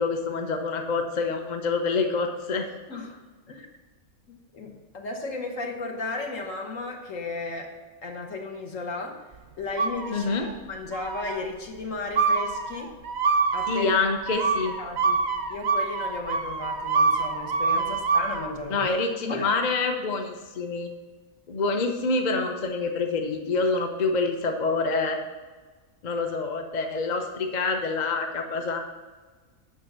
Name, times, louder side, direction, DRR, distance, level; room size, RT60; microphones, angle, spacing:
voice 1, 0.0-2.7 10.1-10.5 13.7-14.7 17.9-18.0 18.7-20.9 21.5-25.2 26.0-28.8, left 3 dB, 40° left, 4 dB, 0.7 m, -26 dB
voice 2, 4.3-7.7 8.0-9.1 9.6-10.3 10.7-12.9 13.5-14.0 14.8-15.2 15.5-18.9 19.3-19.5, left 3 dB, 60° left, 2 dB, 1.6 m, -34 dB
sound 1, 9.8-10.5 10.9-11.5 12.2-18.5, right 4 dB, 60° right, 0.7 m, -26 dB
7.7 x 5.9 x 6.6 m, 1.4 s
omnidirectional pair, 1.5 m